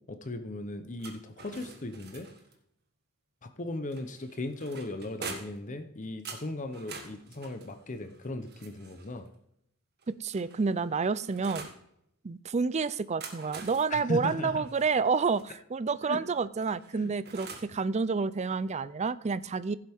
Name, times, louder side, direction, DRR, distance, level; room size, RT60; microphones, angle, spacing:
voice 1, 0.1-2.3 3.4-9.3 13.9-14.6 16.1-16.2 16.9-17.1, left 2 dB, 35° left, 8 dB, 0.8 m, -37 dB
sound 1, 1.0-2.6 3.9-5.7 6.3-9.2 10.0-11.8 13.0-15.5 16.6-17.8, right 4 dB, 45° right, 1.6 m, -46 dB
voice 2, 10.1-11.7 12.2-19.8, right 4 dB, 30° right, 16 dB, 0.4 m, -29 dB
15.5 x 7.7 x 3.6 m, 0.74 s
head